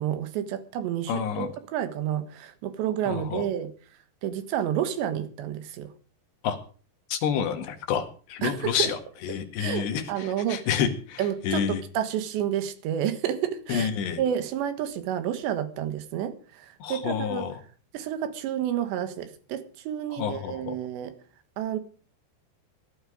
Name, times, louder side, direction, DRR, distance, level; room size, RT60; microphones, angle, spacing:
voice 1, 0.0-3.7 4.2-5.9 8.4-8.9 9.6-10.6 11.2-13.9 14.2-17.5 17.9-21.2 21.6-21.8, right 10 dB, 85° right, 10 dB, 3.7 m, -30 dB
voice 2, 1.1-1.5 3.1-3.5 6.4-6.6 7.1-11.8 13.7-14.2 16.8-17.6 20.1-20.7, left 8 dB, 80° left, 6 dB, 4.0 m, -29 dB
17.5 x 12.0 x 5.0 m, 0.40 s
omnidirectional pair, 4.9 m